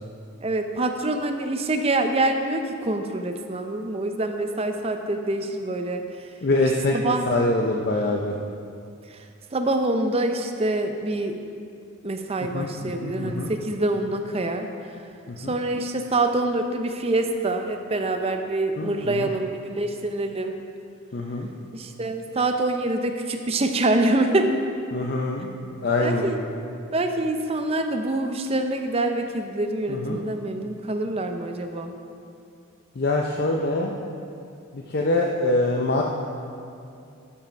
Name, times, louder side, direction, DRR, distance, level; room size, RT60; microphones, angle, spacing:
voice 1, 0.4-6.0 6.9-7.3 9.1-9.2 9.5-11.4 12.0-14.7 15.4-20.6 21.7-24.5 26.0-26.4 26.9-31.9, right 2 dB, 30° right, 6 dB, 0.6 m, -25 dB
voice 2, 6.4-8.4 12.5-13.5 15.3-15.6 18.8-19.3 21.1-21.5 24.9-25.5 25.8-26.3 29.9-30.2 33.0-33.9 34.7-36.0, left 2 dB, 50° left, 0 dB, 0.6 m, -24 dB
11.5 x 5.8 x 5.2 m, 2.5 s
head